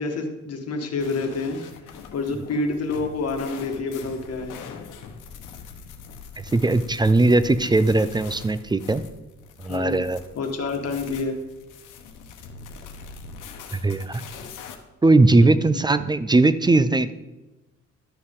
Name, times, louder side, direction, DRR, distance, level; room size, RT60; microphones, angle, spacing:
voice 1, 0.0-1.6 2.1-4.6 9.7-10.0 10.3-11.4 15.4-15.5, left 3 dB, 55° left, 3 dB, 1.6 m, -28 dB
sound 1, 1.0-14.8, left 5 dB, 90° left, 1.0 m, -42 dB
voice 2, 6.5-9.0 9.6-10.2 13.7-14.2 15.0-17.1, right 2 dB, 15° right, 13 dB, 0.4 m, -19 dB
12.0 x 6.3 x 3.7 m, 1.1 s
cardioid pair, 90°, 30 cm